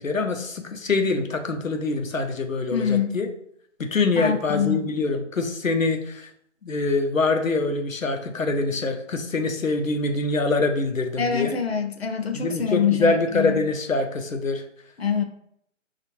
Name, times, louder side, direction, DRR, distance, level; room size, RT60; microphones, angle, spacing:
voice 1, 0.0-3.3 3.8-6.3 6.6-11.5 12.3-14.6, left 3 dB, 85° left, 5 dB, 0.8 m, -24 dB
voice 2, 2.7-3.2 4.2-5.0 11.2-13.6 15.0-15.2, left 7 dB, 55° left, 5 dB, 0.6 m, -25 dB
5.9 x 2.4 x 3.0 m, 0.70 s
figure-of-eight pair, 155°, 39 cm